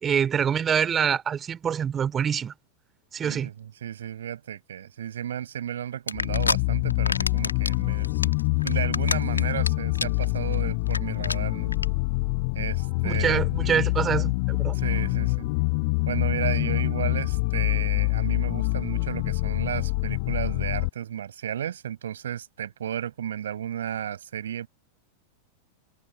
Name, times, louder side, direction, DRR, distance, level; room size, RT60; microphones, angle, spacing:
voice 1, 0.0-2.5 3.1-3.5 13.0-14.8, right 8 dB, 25° right, 3.1 m, -25 dB
voice 2, 3.2-8.3 8.6-11.7 12.5-13.5 13.8-13.9 14.7-15.5 16.1-24.7, right 10 dB, 65° right, 5.1 m, -33 dB
sound 1, 6.1-6.6 6.9-7.7 8.0-9.7 10.0-10.3 10.5-10.6 10.9-11.0 11.2-11.4 11.7-11.9, left 4 dB, 80° left, 2.2 m, -27 dB
sound 2, 6.1-20.9, left 28 dB, 45° left, 5.4 m, -26 dB
figure-of-eight pair, 90°, 0 cm